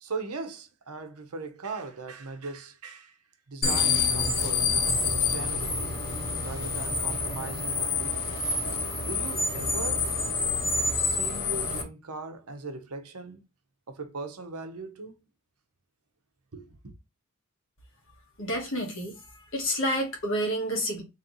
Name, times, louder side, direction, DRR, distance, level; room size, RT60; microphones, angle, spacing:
voice 1, 0.0-3.2 3.5-6.0 6.4-8.4 9.0-10.1 11.0-13.4 13.9-15.2 16.5-16.9, right 3 dB, 90° right, 0.9 m, -39 dB
sound 1, 3.6-11.8, left 4 dB, 45° left, 1.6 m, -27 dB
voice 2, 18.4-19.1 19.5-21.0, equal, 60° left, 1.3 m, -29 dB
3.9 x 3.2 x 3.0 m
head